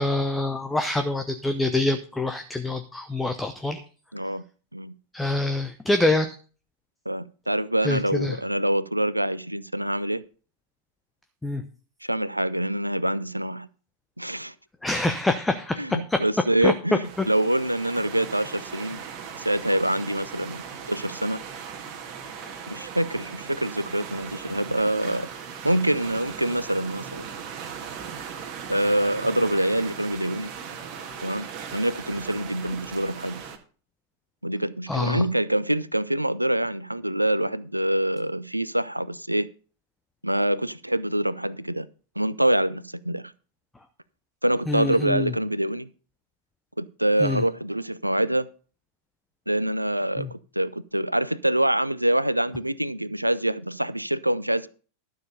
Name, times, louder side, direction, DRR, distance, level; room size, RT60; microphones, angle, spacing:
voice 1, 0.0-3.8 5.1-6.3 7.8-8.4 11.4-11.6 14.8-15.8 16.1-16.2 16.6-16.7 22.4-22.5 34.9-35.2 44.7-45.3 47.2-47.4 50.2-50.3, left 2 dB, 10° left, 8 dB, 0.8 m, -25 dB
voice 2, 4.1-4.4 4.7-4.9 7.1-10.2 12.0-13.7 14.2-14.5 15.8-19.0 19.4-21.4 22.7-25.3 25.6-27.3 28.7-30.5 31.2-33.4 34.4-39.5 40.2-41.9 42.2-43.3 44.4-45.9 46.8-48.5 49.5-54.7, right 1 dB, 85° right, 18 dB, 0.5 m, -25 dB
sound 1, 17.0-33.6, right 7 dB, 40° right, 1.6 m, -38 dB
12.0 x 6.7 x 5.4 m, 0.38 s
figure-of-eight pair, 90°, 0 cm